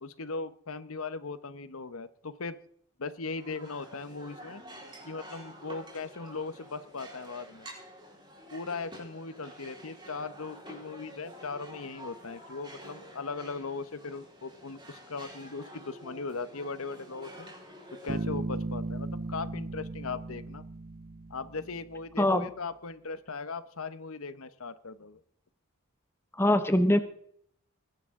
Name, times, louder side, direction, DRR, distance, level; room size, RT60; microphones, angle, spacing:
voice 1, 0.0-2.6 3.0-4.6 5.0-7.7 8.5-17.5 18.0-20.6 21.3-25.2, left 4 dB, 75° left, 14 dB, 0.9 m, -38 dB
sound 1, 3.3-18.2, equal, 20° right, 4.2 m, -49 dB
Bass guitar, 18.1-21.8, right 2 dB, 40° right, 0.6 m, -36 dB
voice 2, 26.4-27.0, left 1 dB, 10° left, 9 dB, 1.0 m, -23 dB
21.0 x 11.0 x 3.7 m, 0.64 s
head